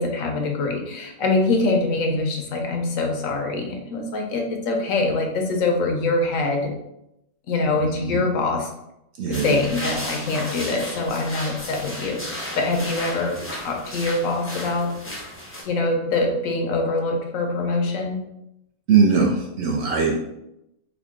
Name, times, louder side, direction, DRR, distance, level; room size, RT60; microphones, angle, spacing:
voice 1, 0.0-6.7 7.5-8.7 9.3-14.9 15.6-18.2, left 3 dB, 75° left, 2 dB, 1.0 m, -24 dB
voice 2, 7.8-8.2 9.2-9.6 18.9-20.2, right 5 dB, 65° right, 0 dB, 0.7 m, -21 dB
sound 1, 9.3-15.6, left 1 dB, 20° left, 0.3 m, -34 dB
3.6 x 2.2 x 3.6 m, 0.85 s
omnidirectional pair, 1.5 m